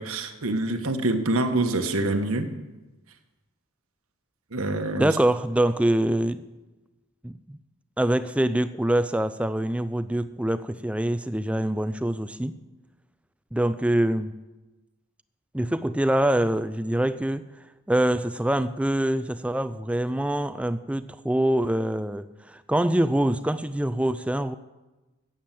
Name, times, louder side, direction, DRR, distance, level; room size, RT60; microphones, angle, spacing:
voice 1, 0.0-2.5 4.5-5.1, right 2 dB, 75° right, 7 dB, 1.3 m, -26 dB
voice 2, 5.0-6.4 7.2-7.6 8.0-12.6 13.5-14.3 15.5-17.5 17.9-24.5, right 1 dB, 5° right, 13 dB, 0.4 m, -25 dB
14.5 x 8.8 x 7.5 m, 1.1 s
head